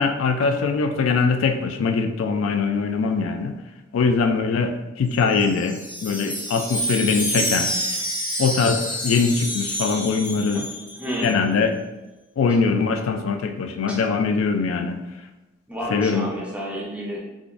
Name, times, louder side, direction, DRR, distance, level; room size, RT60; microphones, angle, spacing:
voice 1, 0.0-3.5 3.9-7.7 8.4-10.7 11.2-11.8 12.4-15.0 15.9-16.3, left 4 dB, 80° left, 7 dB, 0.3 m, -22 dB
Wind chime, 5.1-11.3, equal, 25° left, 0.7 m, -28 dB
voice 2, 11.0-11.4 12.5-12.6 13.9-14.0 15.7-17.2, equal, 5° right, -3 dB, 0.4 m, -30 dB
3.6 x 2.5 x 2.4 m, 1.1 s
head